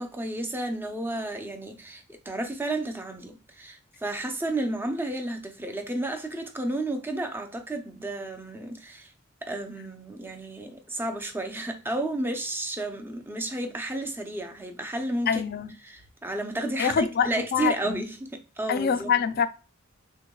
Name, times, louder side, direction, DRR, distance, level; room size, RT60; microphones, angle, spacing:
voice 1, 0.0-9.1 9.4-15.4 15.8-19.1, right 2 dB, 10° right, 0.5 m, -32 dB
voice 2, 15.3-15.7 16.8-18.0 18.7-19.5, left 7 dB, 50° left, 0.4 m, -25 dB
6.3 x 2.2 x 2.3 m
head